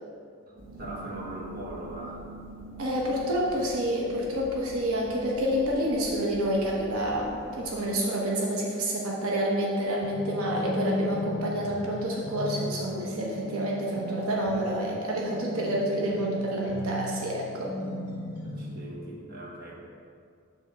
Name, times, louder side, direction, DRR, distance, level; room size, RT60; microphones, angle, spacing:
sound 1, 0.6-7.9, right 2 dB, 60° right, 1.1 m, -45 dB
voice 1, 0.8-2.3 18.4-19.8, right 1 dB, 45° right, -4 dB, 1.3 m, -40 dB
voice 2, 2.8-17.8, equal, 80° right, -3 dB, 1.0 m, -28 dB
sound 2, 10.0-18.9, left 1 dB, 20° left, 1.2 m, -37 dB
7.4 x 3.5 x 6.3 m, 2.3 s
head